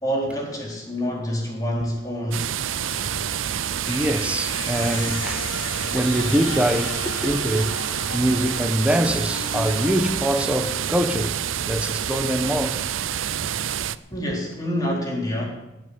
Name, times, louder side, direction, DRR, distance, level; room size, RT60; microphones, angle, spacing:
voice 1, 0.0-2.5 4.7-4.8 14.1-15.4, equal, 20° left, 4.0 m, -27 dB
sound 1, 2.3-14.0, right 9 dB, 85° right, 0.6 m, -28 dB
sound 2, 2.7-10.1, left 5 dB, 80° left, 1.3 m, -37 dB
voice 2, 3.9-5.5 5.9-7.8 8.1-11.3 11.7-12.8, equal, 5° right, 1.0 m, -24 dB
18.5 x 6.5 x 9.3 m
head